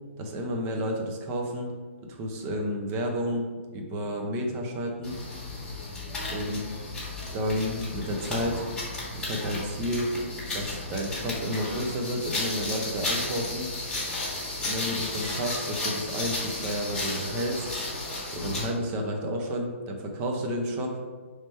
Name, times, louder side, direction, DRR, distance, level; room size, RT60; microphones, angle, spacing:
voice 1, 0.2-1.8 2.1-3.5 3.7-5.2 6.3-6.6 7.3-8.6 9.1-10.1 10.5-13.7 14.6-17.7 18.3-21.0, equal, 25° right, 2 dB, 0.6 m, -31 dB
sound 1, 5.0-18.8, left 2 dB, 10° left, 1.3 m, -33 dB
3.2 x 3.2 x 4.3 m, 1.4 s
hypercardioid pair, 145°, 7 cm